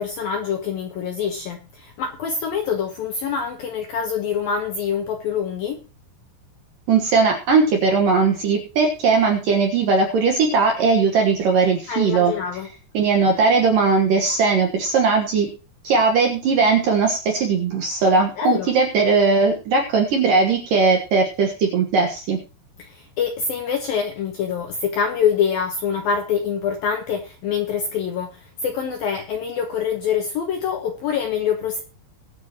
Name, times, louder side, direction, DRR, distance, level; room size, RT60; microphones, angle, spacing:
voice 1, 0.0-5.8 11.9-12.7 18.4-18.7 22.8-31.8, left 7 dB, 70° left, 4 dB, 2.2 m, -25 dB
voice 2, 6.9-12.3 12.9-15.5 15.8-22.4, right 4 dB, 65° right, 2 dB, 2.3 m, -19 dB
22.0 x 8.2 x 3.0 m, 0.34 s
omnidirectional pair, 5.8 m